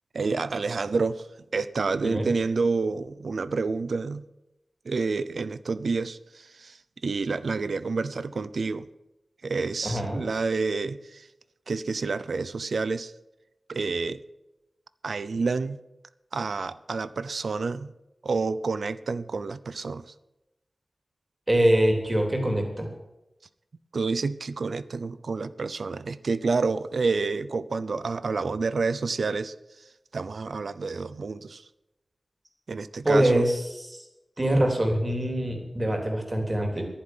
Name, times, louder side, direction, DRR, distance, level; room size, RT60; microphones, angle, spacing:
voice 1, 0.1-1.3 1.5-4.3 4.8-8.9 9.4-11.3 11.7-13.1 13.7-14.2 15.0-15.8 16.3-17.9 18.2-20.1 23.9-29.8 30.1-31.6 32.7-33.4, right 4 dB, 85° right, 16 dB, 0.6 m, -29 dB
voice 2, 9.8-10.2 21.5-22.9 33.0-34.1 34.4-36.9, right 1 dB, 30° right, 3 dB, 3.6 m, -24 dB
11.0 x 10.0 x 9.6 m, 0.96 s
wide cardioid pair, 85°, 0 cm